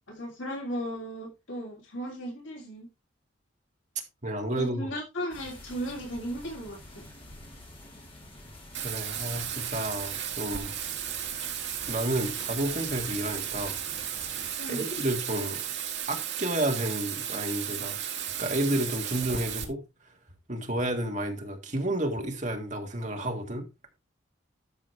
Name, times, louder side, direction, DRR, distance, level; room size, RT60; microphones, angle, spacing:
voice 1, 0.0-2.9 4.5-7.0 14.6-14.9, equal, 70° left, 3.0 m, -36 dB
voice 2, 4.2-4.9 8.8-10.7 11.9-13.8 14.7-15.7 16.1-19.8 20.5-23.7, right 1 dB, 35° right, 1.8 m, -31 dB
sound 1, 5.3-14.5, left 1 dB, 25° left, 3.5 m, -48 dB
Bathtub (filling or washing), 8.7-19.6, right 9 dB, 60° right, 2.0 m, -34 dB
12.5 x 6.3 x 3.3 m
head